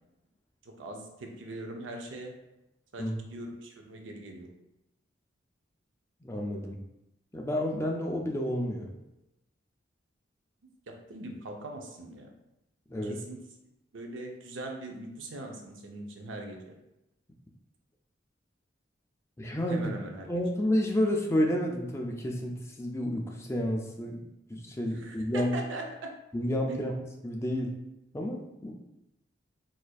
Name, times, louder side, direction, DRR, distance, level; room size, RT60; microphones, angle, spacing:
voice 1, 0.6-2.3 2.9-4.5 10.6-12.3 13.0-13.4 13.9-16.7 19.7-20.3 24.8-26.1 26.7-26.8, right 2 dB, 85° right, 2 dB, 0.5 m, -41 dB
voice 2, 6.2-6.8 7.3-8.9 12.9-13.2 19.4-19.9 20.3-24.2 24.5-25.6 26.3-26.9 27.2-27.7 28.1-28.7, equal, 15° left, 1 dB, 0.3 m, -30 dB
4.1 x 2.5 x 2.3 m, 0.91 s
head